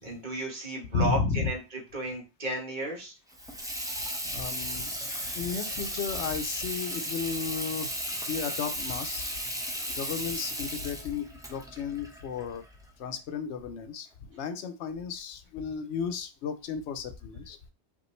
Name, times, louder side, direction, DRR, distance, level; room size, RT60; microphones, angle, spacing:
voice 1, 0.0-3.1, right 1 dB, 45° right, 0 dB, 1.4 m, -33 dB
voice 2, 0.9-1.5 4.2-5.0 5.3-9.2 9.9-12.6 13.0-17.6, left 6 dB, 85° left, 9 dB, 0.9 m, -34 dB
Water tap faucet / Sink (filling or washing), 3.3-12.9, equal, 5° right, 0.6 m, -35 dB
5.2 x 2.5 x 3.1 m, 0.29 s
omnidirectional pair, 1.1 m